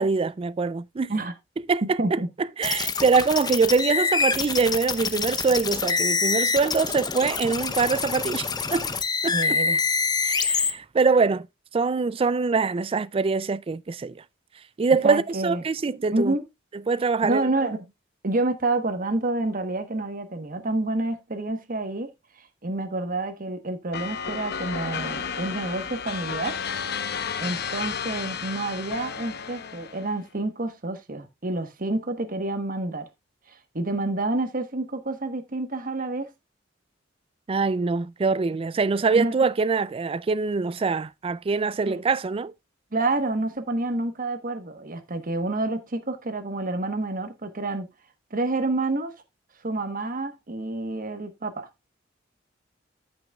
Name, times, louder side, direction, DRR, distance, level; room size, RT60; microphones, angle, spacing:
voice 1, 0.0-1.1 1.7-8.9 9.2-9.6 10.2-11.5 11.7-14.2 14.8-16.3 16.9-17.4 37.5-42.5, right 4 dB, 30° right, 0.4 m, -24 dB
voice 2, 1.8-2.3 9.3-9.8 15.0-15.6 16.1-16.4 17.2-17.8 18.2-22.1 22.4-26.5 27.4-33.1 33.5-36.3 39.1-39.3 41.9-42.0 42.9-47.9 48.3-49.1 49.6-51.7, right 2 dB, 45° right, 1.2 m, -28 dB
sound 1, 2.6-10.7, left 5 dB, 20° left, 0.7 m, -26 dB
sound 2, 23.9-30.2, left 6 dB, 55° left, 0.8 m, -32 dB
14.0 x 6.0 x 2.3 m
head